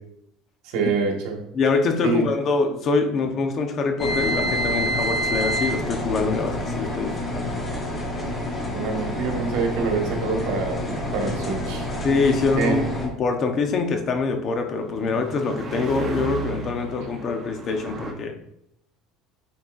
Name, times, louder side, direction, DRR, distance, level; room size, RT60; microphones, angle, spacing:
voice 1, 0.6-1.4 2.0-2.3 8.7-11.9 12.6-12.8, right 4 dB, 75° right, 2 dB, 1.6 m, -25 dB
voice 2, 1.5-7.5 12.0-18.3, left 4 dB, 40° left, 5 dB, 0.9 m, -24 dB
sound 1, 4.0-13.1, equal, 20° left, 1.5 m, -27 dB
sound 2, 9.6-18.1, right 3 dB, 30° right, 1.1 m, -37 dB
9.5 x 4.3 x 2.6 m, 0.77 s
cardioid pair, 135°, 0 cm